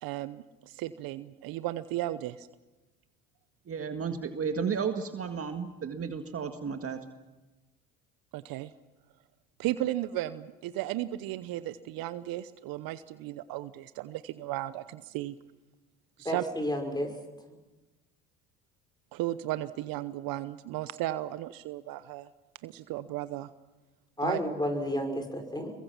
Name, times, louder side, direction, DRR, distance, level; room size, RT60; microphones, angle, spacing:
voice 1, 0.0-2.5 8.3-8.7 9.6-15.3 16.2-16.4 19.1-22.3 22.6-23.5 24.2-24.4, right 15 dB, 60° right, 14 dB, 0.9 m, -35 dB
voice 2, 3.7-7.0, right 6 dB, 35° right, 6 dB, 1.9 m, -33 dB
voice 3, 16.2-17.1 17.5-17.6 24.2-25.7, equal, 10° left, 4 dB, 5.7 m, -31 dB
27.0 x 23.0 x 5.9 m, 1.1 s
hypercardioid pair, 70°, 40 cm